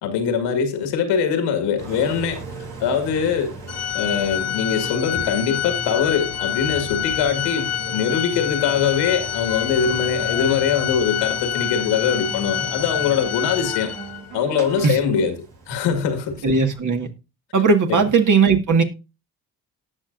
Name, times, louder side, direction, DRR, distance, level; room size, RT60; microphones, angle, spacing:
voice 1, 0.0-2.4 2.8-3.5 3.9-13.9 14.3-15.4 15.7-16.4 17.9-18.0, left 7 dB, 80° left, 2.0 m, -22 dB
Engine, 1.8-16.8, right 2 dB, 85° right, 3.1 m, -36 dB
Organ, 3.7-14.3, left 11 dB, 35° left, 0.6 m, -27 dB
voice 2, 16.4-17.1 17.5-18.8, right 4 dB, 45° right, 1.9 m, -17 dB
18.0 x 6.0 x 2.6 m
hypercardioid pair, 60°, 42 cm